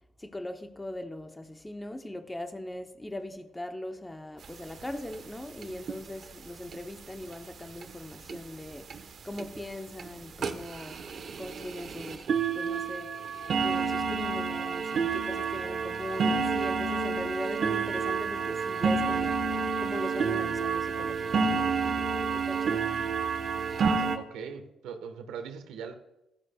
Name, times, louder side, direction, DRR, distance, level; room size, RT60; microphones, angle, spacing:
voice 1, 0.2-11.0 11.4-12.3 12.5-13.1 13.6-19.5 19.8-22.0 22.3-22.9, left 1 dB, 15° left, 0.8 m, -40 dB
sound 1, 4.4-4.5 4.8-4.9 5.1-5.3 5.6-6.0 6.7-6.8 7.3-7.4 7.8-7.9 8.3-8.4 8.9-9.0 9.4-9.6 10.0-10.1 10.4-24.2, right 5 dB, 55° right, 1.1 m, -29 dB
voice 2, 23.8-25.9, right 7 dB, 90° right, 1.4 m, -40 dB
16.0 x 13.5 x 2.3 m
cardioid pair, 90°, 0 cm